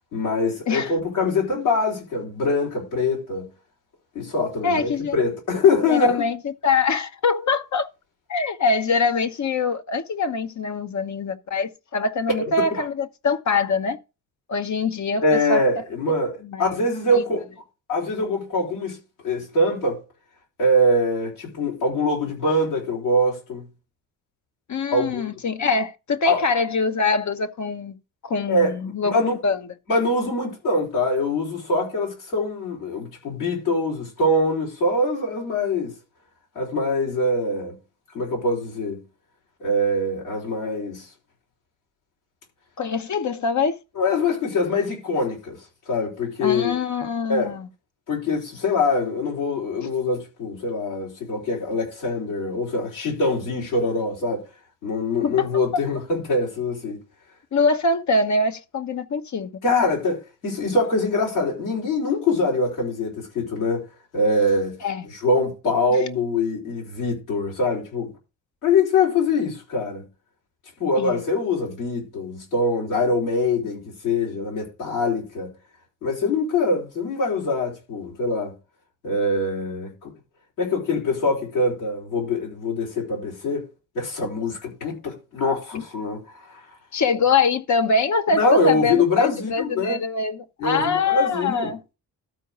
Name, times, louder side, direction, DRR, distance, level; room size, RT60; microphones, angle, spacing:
voice 1, 0.1-3.5 4.1-6.2 12.4-12.8 15.2-17.4 17.9-19.0 19.2-20.0 20.6-23.7 24.9-25.3 26.2-26.4 28.5-28.7 29.0-29.4 29.9-35.9 36.5-37.7 38.1-39.0 39.6-41.1 44.0-45.6 45.9-46.8 47.3-47.5 48.1-54.4 54.8-57.0 59.6-63.8 64.1-64.7 65.0-68.1 68.6-70.0 70.8-75.5 76.0-78.5 79.0-80.1 80.6-83.7 83.9-86.6 88.3-90.0 90.6-91.7, left 2 dB, 85° left, 4.4 m, -23 dB
voice 2, 4.6-5.2 5.9-7.9 8.3-14.0 14.5-15.6 16.4-17.2 24.7-28.0 28.2-29.1 29.4-29.6 42.8-43.8 46.4-47.6 55.2-55.8 57.5-59.5 64.8-65.1 71.0-71.2 86.9-91.8, left 4 dB, 40° left, 1.0 m, -23 dB
13.0 x 4.6 x 4.9 m
hypercardioid pair, 40°, 45 cm